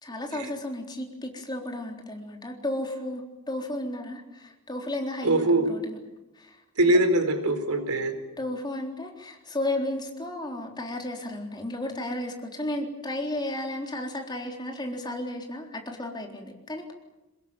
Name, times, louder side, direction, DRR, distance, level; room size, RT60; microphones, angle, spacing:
voice 1, 0.0-6.0 6.4-6.6 8.4-16.9, left 1 dB, 20° left, 2 dB, 3.9 m, -33 dB
voice 2, 5.2-5.7 6.8-8.1, right 2 dB, 85° right, 8 dB, 4.3 m, -22 dB
23.5 x 20.5 x 9.1 m, 1.0 s
head